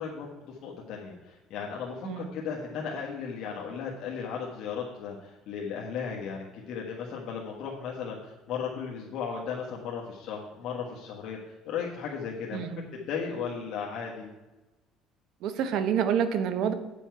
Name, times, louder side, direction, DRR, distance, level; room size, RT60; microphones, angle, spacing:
voice 1, 0.0-11.4 11.6-14.3, left 6 dB, 60° left, -3 dB, 1.4 m, -36 dB
voice 2, 12.5-12.8 15.4-16.7, right 8 dB, 65° right, 10 dB, 0.9 m, -27 dB
9.2 x 7.0 x 4.6 m, 1.1 s
cardioid pair, 135°, 0 cm